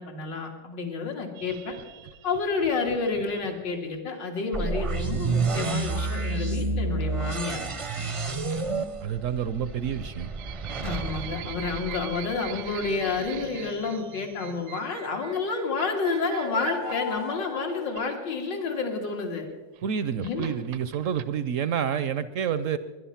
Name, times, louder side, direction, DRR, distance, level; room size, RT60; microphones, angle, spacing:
voice 1, 0.0-1.7 2.2-7.6 10.8-19.5 20.2-20.6, left 4 dB, 80° left, 2 dB, 2.8 m, -30 dB
sound 1, 1.4-4.0 5.6-5.9 7.0-7.3 8.5-9.1 9.4-18.5 19.5-21.2, right 11 dB, 90° right, 1.4 m, -42 dB
sound 2, 4.5-12.4, right 3 dB, 40° right, 0.4 m, -29 dB
voice 2, 9.0-10.3 19.8-22.8, right 8 dB, 65° right, 14 dB, 0.8 m, -28 dB
sound 3, 15.9-18.8, left 6 dB, 65° left, 0.4 m, -39 dB
21.5 x 11.0 x 5.8 m, 1.3 s
omnidirectional pair, 1.9 m